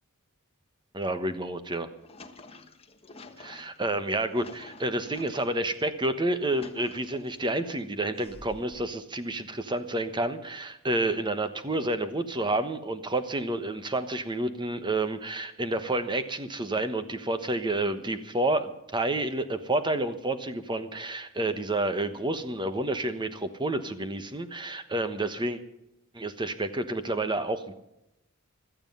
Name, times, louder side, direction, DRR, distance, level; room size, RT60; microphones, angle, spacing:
voice 1, 0.9-1.9 3.4-25.6 26.1-27.7, right 2 dB, 20° right, 10 dB, 1.2 m, -29 dB
sound 1, 1.9-5.8 6.3-7.5 8.2-8.9, left 3 dB, 30° left, 1.3 m, -49 dB
17.0 x 13.0 x 5.5 m, 0.86 s
head